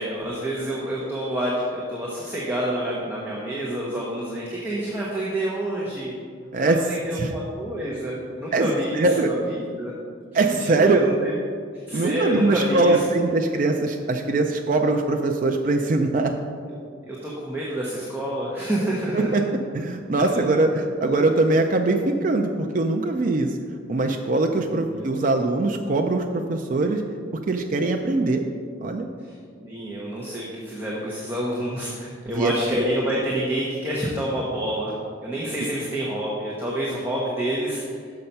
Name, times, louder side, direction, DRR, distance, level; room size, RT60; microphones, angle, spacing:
voice 1, 0.0-6.1 6.5-9.9 10.4-11.3 11.7-13.2 17.1-19.3 20.3-20.4 24.7-25.1 29.2-34.9 35.2-38.0, right 1 dB, 10° right, -5 dB, 0.8 m, -28 dB
voice 2, 8.9-9.3 10.3-11.0 11.9-16.3 19.1-19.4 19.7-23.5 23.9-27.0 27.5-28.4 28.8-29.1 32.3-32.5, right 2 dB, 40° right, 3 dB, 0.4 m, -22 dB
6.4 x 5.8 x 5.4 m, 2.1 s
head